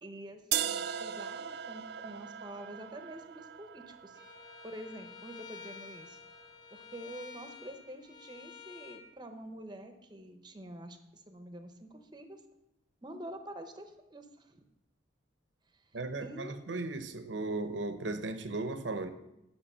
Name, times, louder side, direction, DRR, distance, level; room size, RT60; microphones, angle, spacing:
voice 1, 0.0-4.2 4.6-6.2 6.7-12.4 13.0-14.6 15.7-16.6, right 1 dB, 25° right, 7 dB, 0.8 m, -47 dB
sound 1, 0.5-6.5, right 10 dB, 55° right, 0.4 m, -39 dB
Bowed string instrument, 4.1-9.0, left 6 dB, 20° left, 1.1 m, -50 dB
voice 2, 15.9-19.1, right 2 dB, 75° right, 10 dB, 0.8 m, -36 dB
8.8 x 5.9 x 6.8 m, 0.89 s
head